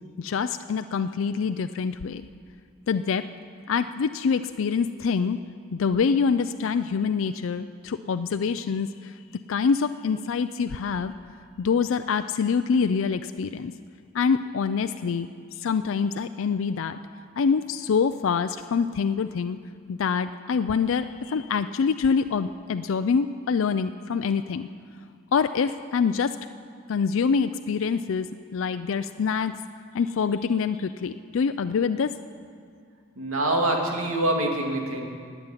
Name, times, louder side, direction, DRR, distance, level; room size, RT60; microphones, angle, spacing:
voice 1, 0.2-2.2 2.9-3.3 3.7-5.4 5.7-9.1 9.5-11.1 11.6-13.7 14.1-15.3 15.6-17.0 17.4-19.6 19.9-24.7 25.3-26.3 26.9-29.6 29.9-32.1, left 5 dB, 70° left, 10 dB, 0.4 m, -25 dB
voice 2, 33.2-35.0, right 1 dB, 85° right, 1 dB, 2.2 m, -25 dB
16.5 x 7.1 x 9.8 m, 2.2 s
head